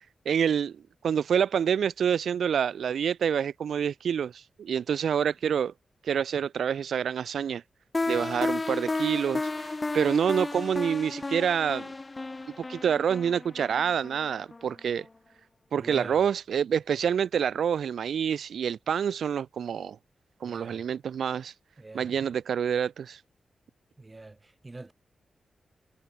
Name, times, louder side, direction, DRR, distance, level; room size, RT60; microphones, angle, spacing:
voice 1, 0.3-5.7 6.0-7.6 8.1-11.9 12.6-15.1 15.7-20.0 20.4-21.5 21.9-23.2, right 8 dB, 85° right, 0.7 m, -27 dB
sound 1, 7.9-14.7, left 3 dB, 30° left, 1.4 m, -33 dB
voice 2, 15.8-16.2 20.4-20.8 21.8-22.1 24.0-24.4 24.6-24.9, right 2 dB, 25° right, 3.9 m, -43 dB
cardioid pair, 95°, 0 cm